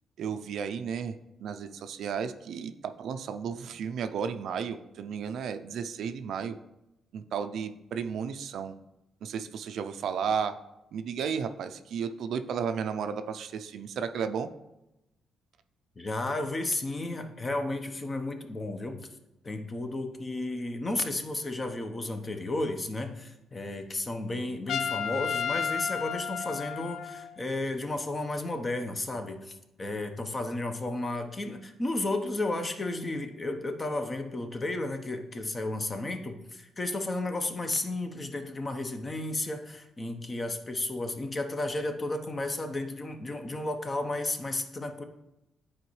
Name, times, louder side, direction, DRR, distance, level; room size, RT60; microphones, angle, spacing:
voice 1, 0.2-1.1 1.4-6.6 7.1-8.7 9.2-10.5 10.9-14.5, right 7 dB, 70° right, 9 dB, 0.4 m, -33 dB
voice 2, 16.0-19.0 19.4-45.0, left 2 dB, 30° left, 6 dB, 0.8 m, -33 dB
Trumpet, 24.7-27.4, left 7 dB, 70° left, 0.3 m, -32 dB
9.7 x 4.3 x 3.1 m, 0.92 s
cardioid pair, 90°, 0 cm